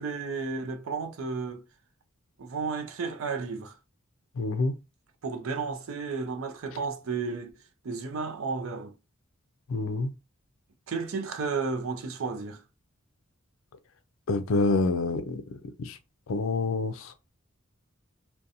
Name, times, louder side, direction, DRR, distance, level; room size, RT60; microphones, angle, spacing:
voice 1, 0.0-1.6 2.4-3.7 5.2-8.9 10.9-12.6, right 4 dB, 90° right, 0.5 m, -33 dB
voice 2, 4.4-4.7 9.7-10.1 14.3-15.4 15.8-16.0 16.3-17.1, left 3 dB, 80° left, 0.4 m, -27 dB
2.7 x 2.2 x 2.5 m
head